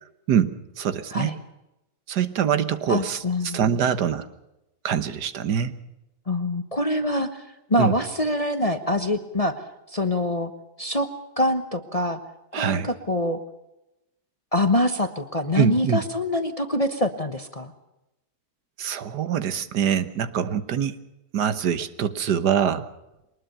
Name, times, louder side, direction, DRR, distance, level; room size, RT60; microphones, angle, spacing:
voice 1, 0.3-1.3 2.1-4.3 4.8-5.7 7.8-8.0 12.5-12.9 15.6-16.0 18.8-21.0 21.3-22.9, right 8 dB, 75° right, 13 dB, 1.7 m, -24 dB
voice 2, 2.9-3.6 6.3-7.4 7.7-9.5 9.9-10.5 10.8-11.1 11.4-12.2 12.5-13.4 14.5-17.7, left 1 dB, 25° left, 8 dB, 1.1 m, -25 dB
23.0 x 20.0 x 6.9 m, 0.94 s
omnidirectional pair, 1.8 m